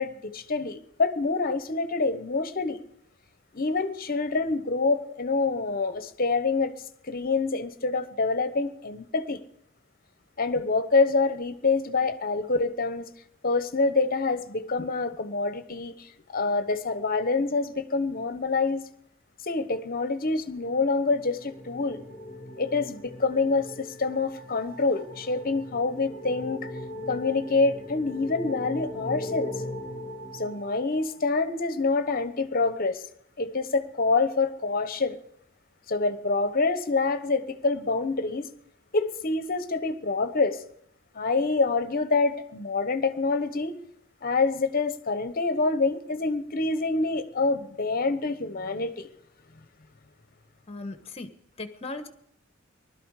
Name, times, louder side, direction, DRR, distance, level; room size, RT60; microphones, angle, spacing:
voice 1, 0.0-2.8 3.5-6.7 7.1-9.4 10.4-13.1 13.4-15.9 16.3-18.8 19.5-22.0 22.6-26.7 27.1-29.5 30.3-33.0 33.4-35.2 35.9-38.5 38.9-40.6 41.1-43.8 44.2-49.1, left 3 dB, 45° left, 12 dB, 1.1 m, -26 dB
sound 1, 20.5-31.2, left 1 dB, ahead, 4.4 m, -39 dB
voice 2, 50.7-51.3 51.6-52.1, left 2 dB, 30° left, 9 dB, 1.3 m, -37 dB
20.0 x 12.5 x 4.9 m, 0.74 s
head